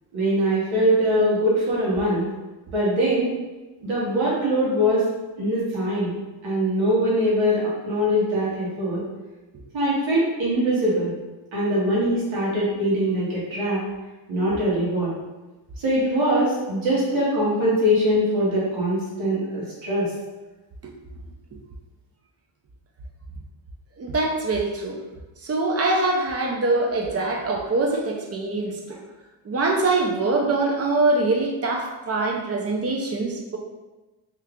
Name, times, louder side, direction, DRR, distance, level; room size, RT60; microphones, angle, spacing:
voice 1, 0.1-2.2 2.7-3.3 3.8-5.1 5.4-6.1 6.4-9.0 9.7-11.1 11.5-13.8 14.3-15.1 15.8-20.1, equal, 75° right, -7 dB, 1.4 m, -22 dB
voice 2, 24.0-25.0 25.4-29.0 29.5-33.6, right 2 dB, 30° right, 1 dB, 0.5 m, -23 dB
3.0 x 2.3 x 3.5 m, 1.1 s
cardioid pair, 110°, 48 cm